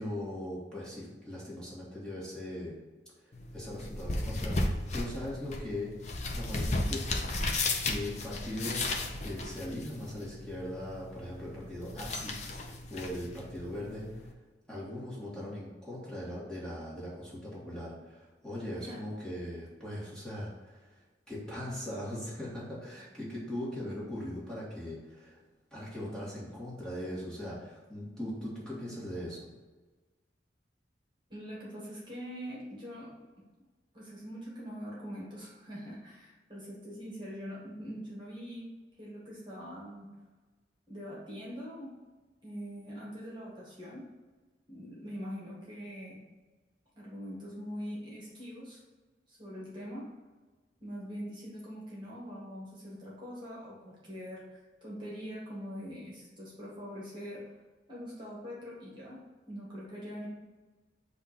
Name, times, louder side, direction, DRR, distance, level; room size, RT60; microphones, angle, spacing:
voice 1, 0.0-2.8 3.5-5.9 6.3-7.5 7.8-8.9 9.2-14.3 14.7-25.4 25.7-29.5, left 1 dB, 5° left, -8 dB, 1.9 m, -40 dB
sound 1, 3.3-14.3, left 2 dB, 40° left, 0.8 m, -35 dB
voice 2, 31.3-33.2 33.9-40.1 40.9-42.0 42.4-44.0 44.7-46.2 47.0-48.8 49.3-50.1 50.8-57.5 57.9-60.3, equal, 25° right, -5 dB, 1.7 m, -43 dB
7.9 x 2.7 x 5.2 m, 1.3 s
head